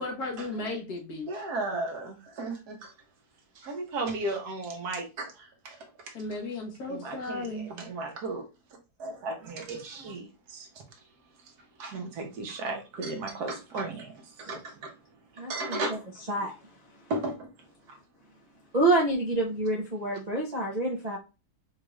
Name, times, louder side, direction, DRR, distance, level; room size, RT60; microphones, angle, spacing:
voice 1, 0.0-1.3 6.1-7.7, left 2 dB, 70° left, 1.6 m, -35 dB
voice 2, 1.3-2.9 3.6-5.8 6.9-8.4 9.0-10.7 11.8-14.9 15.5-16.0 17.1-17.5 17.9-18.0, right 2 dB, 75° right, 1.5 m, -35 dB
voice 3, 15.4-15.8 16.3-16.5 18.7-21.2, right 2 dB, 40° right, 0.6 m, -27 dB
4.4 x 2.4 x 3.0 m
omnidirectional pair, 1.7 m